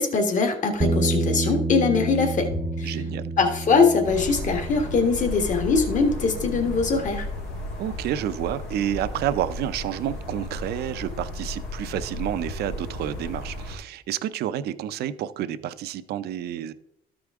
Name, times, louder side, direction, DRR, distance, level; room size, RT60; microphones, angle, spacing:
voice 1, 0.0-2.5 2.8-3.0 3.4-7.3, left 4 dB, 50° left, 5 dB, 1.4 m, -22 dB
Bass guitar, 0.8-7.1, right 2 dB, 15° right, 0.5 m, -30 dB
Bowed string instrument, 2.5-5.0, left 4 dB, 30° left, 0.7 m, -42 dB
voice 2, 2.8-3.3 7.8-16.7, right 11 dB, 70° right, 13 dB, 0.6 m, -29 dB
sound 1, 4.0-13.8, left 1 dB, 90° left, 1.6 m, -34 dB
13.0 x 4.9 x 3.6 m, 0.77 s
cardioid pair, 110°, 17 cm